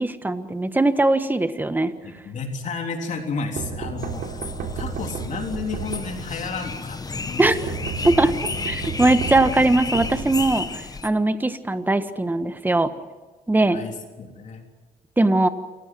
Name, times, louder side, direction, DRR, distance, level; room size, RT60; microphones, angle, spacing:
voice 1, 0.0-1.9 7.4-7.6 8.0-8.3 8.7-10.7 11.0-12.9 13.5-13.8 15.2-15.5, right 2 dB, 10° right, 10 dB, 1.4 m, -20 dB
voice 2, 2.0-7.5 13.6-14.7, left 4 dB, 55° left, 3 dB, 3.5 m, -32 dB
sound 1, 3.6-6.5 7.5-10.8, right 6 dB, 80° right, 3.6 m, -32 dB
sound 2, 4.0-11.1, left 4 dB, 25° left, 1.3 m, -32 dB
28.0 x 16.0 x 7.7 m, 1.3 s
cardioid pair, 95°, 15 cm